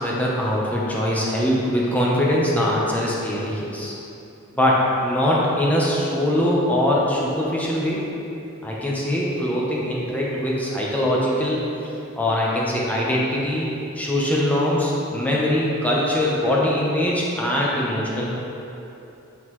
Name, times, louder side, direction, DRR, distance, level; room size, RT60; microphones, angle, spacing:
voice 1, 0.0-3.9 4.5-8.0 8.6-11.7 12.2-13.7 13.9-18.3, left 1 dB, 5° left, -5 dB, 0.9 m, -22 dB
11.5 x 3.9 x 3.2 m, 2.9 s
head